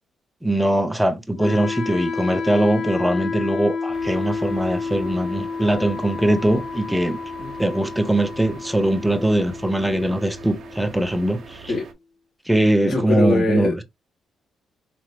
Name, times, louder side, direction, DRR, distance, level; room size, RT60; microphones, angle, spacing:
voice 1, 0.4-11.7 12.5-13.8, right 1 dB, 5° right, 0.7 m, -21 dB
Wind instrument woodwind instrument, 1.4-11.4, left 4 dB, 45° left, 1.3 m, -30 dB
sound 1, 3.9-11.9, right 5 dB, 55° right, 1.1 m, -43 dB
voice 2, 12.8-13.8, left 2 dB, 60° left, 2.7 m, -22 dB
4.8 x 3.0 x 3.1 m
cardioid pair, 90°, 0 cm